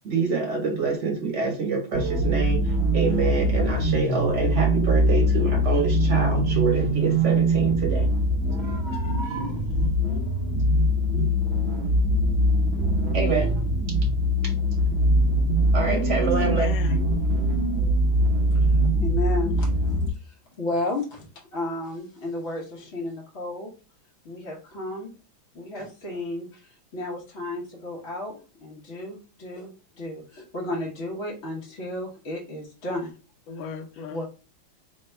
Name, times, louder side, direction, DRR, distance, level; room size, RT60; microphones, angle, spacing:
voice 1, 0.0-8.1 13.1-13.5 15.7-16.7, right 4 dB, 45° right, 1.2 m, -26 dB
sound 1, 1.9-20.1, right 1 dB, 65° right, 0.6 m, -22 dB
voice 2, 16.3-17.1 33.5-34.2, left 4 dB, 75° left, 1.3 m, -36 dB
voice 3, 18.5-23.7 24.2-25.1 25.5-29.7 30.0-33.1 34.1-34.2, left 2 dB, 55° left, 0.8 m, -33 dB
3.4 x 2.2 x 4.3 m
omnidirectional pair, 2.2 m